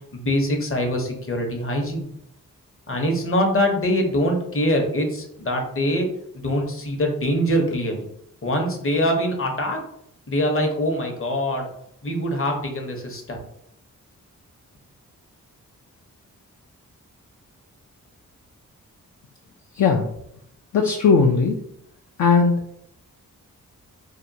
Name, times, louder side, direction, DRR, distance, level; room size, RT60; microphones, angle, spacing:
voice 1, 0.1-2.1 2.9-6.1 6.4-8.1 8.4-9.8 10.3-11.7 12.0-13.4, equal, 35° left, 2 dB, 0.8 m, -23 dB
voice 2, 20.7-21.6 22.2-22.5, left 5 dB, 55° left, 2 dB, 0.5 m, -17 dB
2.8 x 2.2 x 2.6 m, 0.74 s
cardioid pair, 40°, 36 cm